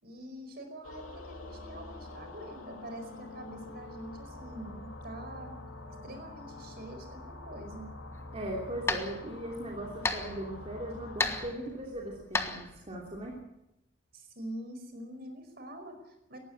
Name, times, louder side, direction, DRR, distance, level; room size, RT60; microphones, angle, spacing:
voice 1, 0.0-5.6 6.0-7.9 14.1-16.4, right 1 dB, 50° right, 7 dB, 5.0 m, -45 dB
sound 1, 0.8-11.5, left 2 dB, 80° left, 3.3 m, -46 dB
sound 2, 8.1-13.4, left 2 dB, 10° left, 1.4 m, -36 dB
voice 2, 8.3-13.4, right 1 dB, 30° right, -2 dB, 3.1 m, -39 dB
19.0 x 15.0 x 9.9 m, 0.88 s
head